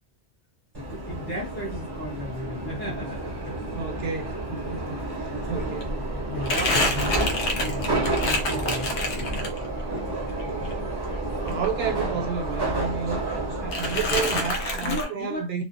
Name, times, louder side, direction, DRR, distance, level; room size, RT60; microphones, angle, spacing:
Subway metro underground, 0.7-15.0, right 2 dB, 25° right, 0.6 m, -31 dB
voice 1, 0.8-3.7 5.4-5.5 6.3-9.5 14.7-15.6, left 1 dB, 15° left, 0.6 m, -36 dB
sound 1, 2.2-12.3, equal, 55° left, 0.6 m, -42 dB
voice 2, 3.7-6.0 6.9-7.3 11.4-13.2 13.6-15.6, right 5 dB, 65° right, 0.8 m, -31 dB
Crumpling crinkling, 5.4-9.9 10.2-12.4 12.6-13.4 13.7-15.0, left 1 dB, 80° left, 1.0 m, -28 dB
2.5 x 2.0 x 2.5 m
omnidirectional pair, 1.2 m